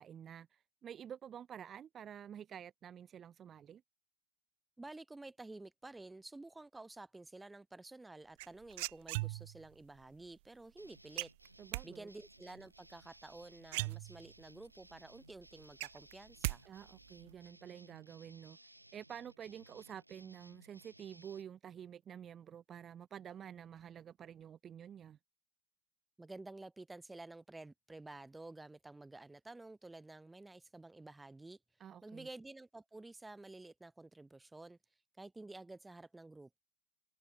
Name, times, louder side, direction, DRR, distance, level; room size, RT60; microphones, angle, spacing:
voice 1, 0.0-3.8 11.6-12.1 16.6-25.2 31.8-32.3, right 9 dB, 25° right, 2.3 m, -50 dB
voice 2, 4.8-11.3 11.8-16.6 26.2-31.6 32.0-34.8 35.2-36.6, right 2 dB, 5° right, 3.3 m, -51 dB
sound 1, 8.4-9.7 11.2-11.8 13.3-13.4 13.7-14.5 14.9-15.0 15.3-16.6 16.8-17.3, right 24 dB, 50° right, 0.7 m, -39 dB
sound 2, 10.8-21.4, right 1 dB, 85° right, 4.3 m, -61 dB
figure-of-eight pair, 90°, 0 cm